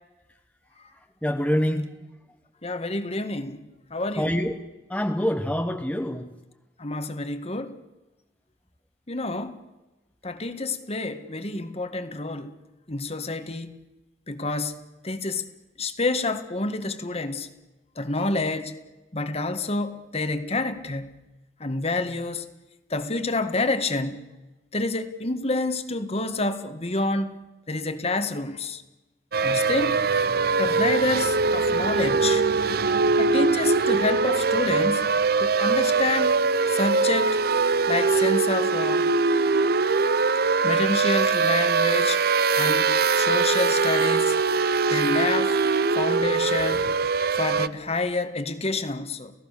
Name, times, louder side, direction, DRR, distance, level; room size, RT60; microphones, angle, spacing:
voice 1, 1.2-2.0 4.2-4.5 4.9-6.3, equal, 10° left, 1.2 m, -25 dB
voice 2, 2.6-3.6 3.9-4.4 6.8-7.8 9.1-9.6 10.2-12.5 12.9-13.8 14.3-14.7 15.0-15.5 15.8-17.5 18.0-18.7 19.1-21.1 21.6-22.5 22.9-24.2 24.7-28.8 29.4-30.0 30.6-32.4 33.2-35.1 35.4-36.4 36.7-37.4 37.9-39.1 40.6-42.2 42.6-44.4 44.9-45.5 46.0-46.9 47.4-49.3, left 2 dB, 35° left, 1.8 m, -28 dB
sound 1, 29.3-47.7, right 4 dB, 60° right, 0.8 m, -22 dB
30.0 x 17.5 x 6.8 m
head